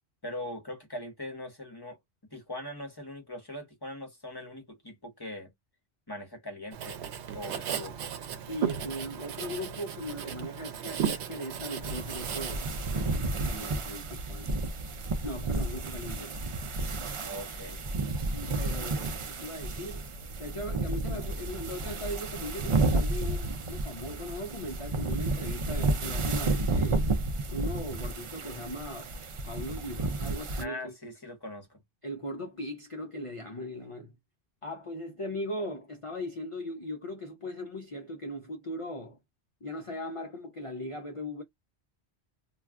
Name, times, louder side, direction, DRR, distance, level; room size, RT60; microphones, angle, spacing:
voice 1, 0.2-2.0 2.3-5.5 6.1-7.0 7.3-8.1 17.2-17.8 30.6-31.8, left 1 dB, 25° left, 0.9 m, -41 dB
Writing, 6.7-13.2, right 8 dB, 90° right, 0.9 m, -35 dB
voice 2, 8.5-12.7 12.9-14.6 15.2-16.4 18.3-20.1 20.4-27.1 27.5-29.1 29.5-30.9 32.0-34.2 34.6-39.2 39.6-41.4, left 1 dB, 40° left, 0.5 m, -39 dB
sound 1, 11.8-30.6, right 2 dB, 45° right, 0.4 m, -31 dB
2.3 x 2.3 x 3.4 m
omnidirectional pair, 1.1 m